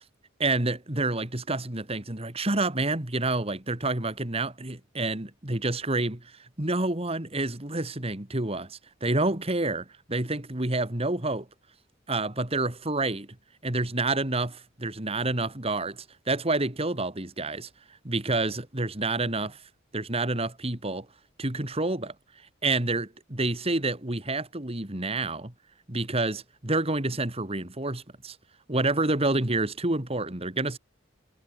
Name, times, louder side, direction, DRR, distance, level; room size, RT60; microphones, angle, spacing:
voice 1, 0.4-6.2 6.6-11.5 12.1-13.3 13.6-17.7 18.0-19.6 19.9-21.1 21.4-22.1 22.6-25.5 25.9-28.4 28.7-30.8, right 2 dB, 30° right, 2.4 m, -28 dB
head